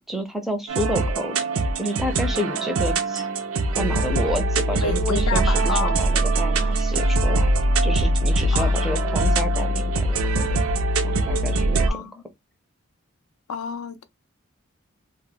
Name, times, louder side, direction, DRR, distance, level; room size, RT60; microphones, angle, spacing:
voice 1, 0.1-1.4 1.7-3.3 3.8-7.5 7.8-10.5 11.0-12.0, equal, ahead, 0.4 m, -30 dB
sound 1, 0.7-11.9, right 2 dB, 85° right, 0.5 m, -22 dB
voice 2, 4.8-6.0 8.5-8.7 11.9-12.2 13.5-14.0, left 5 dB, 85° left, 0.4 m, -29 dB
2.2 x 2.1 x 3.3 m
head